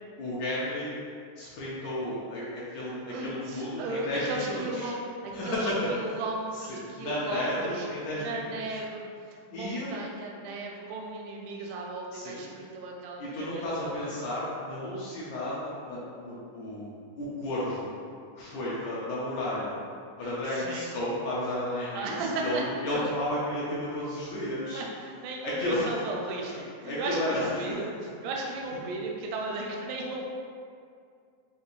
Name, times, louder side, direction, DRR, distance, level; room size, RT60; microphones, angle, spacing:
voice 1, 0.2-1.0 1.4-4.9 5.3-5.8 6.5-6.6 6.9-8.8 9.5-9.9 12.1-12.4 13.2-17.9 18.4-19.8 20.2-24.8 25.4-26.0 26.4-27.8, left 1 dB, 75° left, -7 dB, 1.8 m, -33 dB
voice 2, 3.1-7.9 8.2-14.0 20.2-20.9 21.9-22.6 24.7-27.9 28.2-30.3, right 2 dB, 80° right, -1 dB, 1.9 m, -36 dB
6.6 x 2.6 x 2.5 m, 2.3 s
omnidirectional pair, 3.7 m